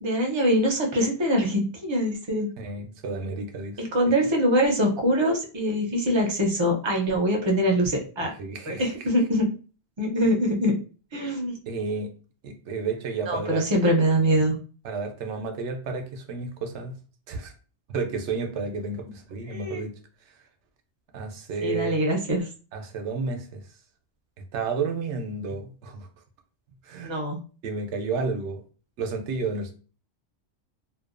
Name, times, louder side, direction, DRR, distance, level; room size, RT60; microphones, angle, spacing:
voice 1, 0.0-2.5 3.8-8.3 8.7-9.5 10.0-10.7 11.1-11.6 13.3-14.6 19.5-19.8 21.6-22.5 27.0-27.4, equal, 35° right, 0 dB, 0.4 m, -23 dB
voice 2, 2.6-3.8 8.4-8.9 11.7-12.1 12.4-13.6 14.8-16.9 17.3-17.5 17.9-19.9 21.1-22.0 22.7-23.6 24.5-26.1 26.8-27.1 27.6-28.6 29.0-29.7, right 4 dB, 90° right, 5 dB, 0.9 m, -31 dB
2.6 x 2.2 x 2.4 m, 0.37 s
omnidirectional pair, 1.1 m